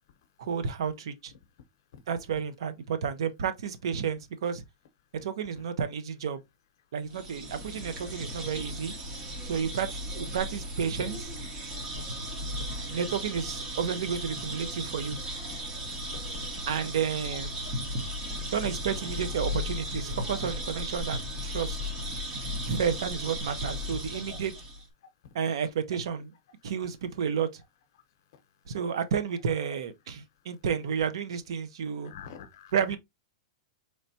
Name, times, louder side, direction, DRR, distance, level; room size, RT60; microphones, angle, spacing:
voice 1, 0.4-1.3 2.1-4.6 5.2-6.4 6.9-8.9 9.4-11.3 12.9-15.2 16.7-17.5 18.5-21.8 22.7-24.5 25.3-26.3 26.6-27.6 28.7-32.1 32.7-33.0, right 7 dB, 65° right, 0.7 m, -31 dB
sound 1, 7.1-24.9, equal, 20° right, 0.9 m, -36 dB
voice 2, 16.1-16.6 18.3-18.4 24.3-24.4 28.3-28.4 32.0-32.7, left 7 dB, 45° left, 0.8 m, -47 dB
4.4 x 3.2 x 2.7 m
supercardioid pair, 180°, 3 cm